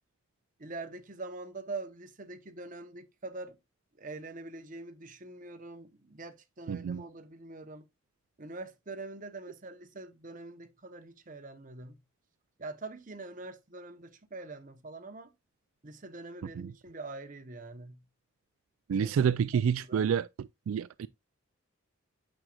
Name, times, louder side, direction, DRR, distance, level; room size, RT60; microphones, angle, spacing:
voice 1, 0.6-3.6 4.0-7.9 8.4-12.0 12.6-15.3 15.8-18.0 19.0-19.1 19.9-20.1, right 3 dB, 40° right, 0.8 m, -44 dB
voice 2, 6.7-7.0 16.6-16.7 18.9-20.3 20.7-21.1, right 7 dB, 80° right, 0.3 m, -28 dB
8.8 x 6.3 x 2.3 m
head